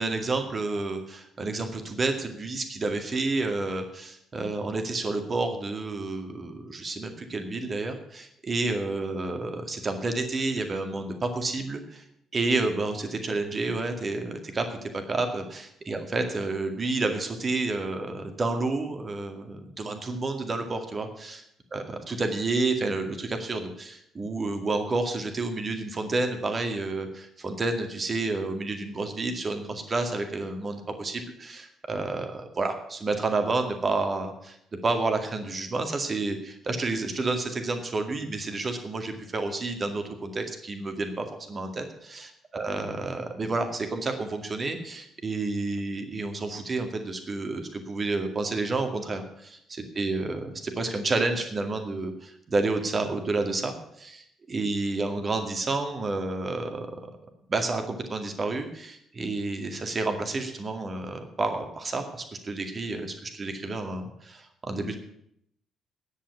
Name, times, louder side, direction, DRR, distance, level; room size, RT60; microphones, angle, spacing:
voice 1, 0.0-12.0 12.3-21.4 21.7-21.8 22.1-34.6 34.8-56.9 57.5-65.0, right 3 dB, 35° right, 6 dB, 2.1 m, -30 dB
9.9 x 8.5 x 9.6 m, 0.75 s
figure-of-eight pair, 45°, 0 cm